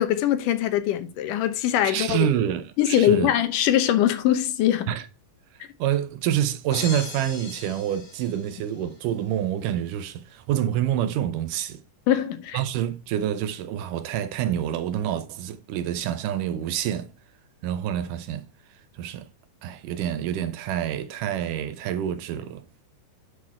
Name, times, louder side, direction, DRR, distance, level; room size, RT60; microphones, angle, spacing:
voice 1, 0.0-2.3 2.8-4.9 12.1-12.6, left 11 dB, 80° left, 2.4 m, -22 dB
voice 2, 1.8-3.3 4.9-5.0 5.8-11.8 12.5-17.1 17.6-18.4 18.9-19.3 19.6-22.7, right 10 dB, 80° right, 2.3 m, -27 dB
sound 1, 6.7-9.0, left 5 dB, 60° left, 4.1 m, -39 dB
9.7 x 4.2 x 4.3 m
omnidirectional pair, 3.8 m